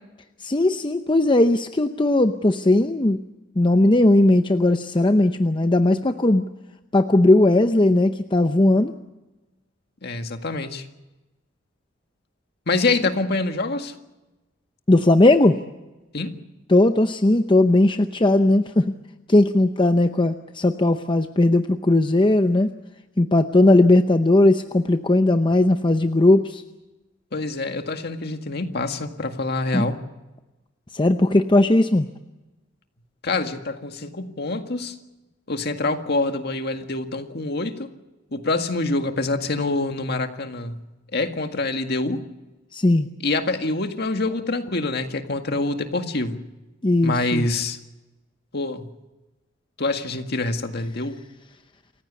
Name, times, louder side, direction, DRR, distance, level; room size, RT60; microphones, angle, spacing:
voice 1, 0.4-3.2 3.6-6.5 6.9-8.9 14.9-15.6 16.7-18.9 19.3-22.7 23.2-26.6 29.7-29.9 30.9-32.1 42.7-43.1 46.8-47.5, left 2 dB, 25° left, 8 dB, 0.7 m, -18 dB
voice 2, 10.0-10.9 12.7-13.9 16.1-16.3 27.3-30.0 33.2-34.9 35.5-37.9 38.3-40.8 41.1-42.2 43.2-46.4 47.0-47.8 48.5-48.9 49.8-51.2, left 2 dB, 55° left, 6 dB, 1.9 m, -26 dB
28.0 x 15.5 x 8.3 m, 1.1 s
head